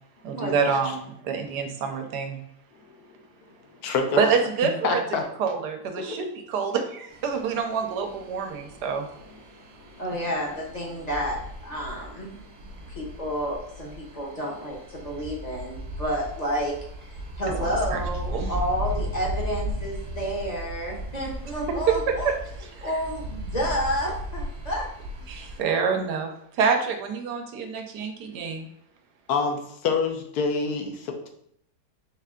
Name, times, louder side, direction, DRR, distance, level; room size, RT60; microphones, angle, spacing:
voice 1, 0.2-2.4 4.2-5.0 5.4-9.1 17.6-18.0 18.3-18.5 21.9-22.3 22.8-22.9 25.3-28.7, right 6 dB, 90° right, 5 dB, 1.3 m, -27 dB
voice 2, 3.8-4.2 4.8-5.2 6.0-6.2 29.3-31.3, left 5 dB, 75° left, 4 dB, 1.2 m, -26 dB
sound 1, 7.1-25.6, right 1 dB, 55° right, 1.0 m, -36 dB
voice 3, 10.0-12.3 12.9-16.7 17.0-17.1 17.4-22.3 22.8-24.9, equal, 35° left, -2 dB, 0.8 m, -30 dB
4.1 x 3.3 x 3.6 m, 0.71 s
omnidirectional pair, 1.7 m